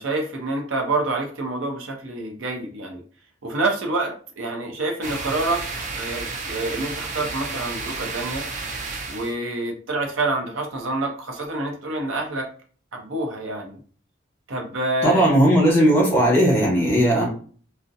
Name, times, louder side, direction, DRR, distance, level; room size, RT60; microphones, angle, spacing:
voice 1, 0.0-3.0 3.4-5.6 5.9-8.4 9.1-12.4 12.9-13.8 14.5-15.3, right 2 dB, 85° right, 2 dB, 0.6 m, -27 dB
sound 1, 5.0-9.3, right 3 dB, 40° right, 0.4 m, -32 dB
voice 2, 15.0-17.3, right 1 dB, 10° left, -4 dB, 1.0 m, -17 dB
2.5 x 2.0 x 2.6 m, 0.42 s
head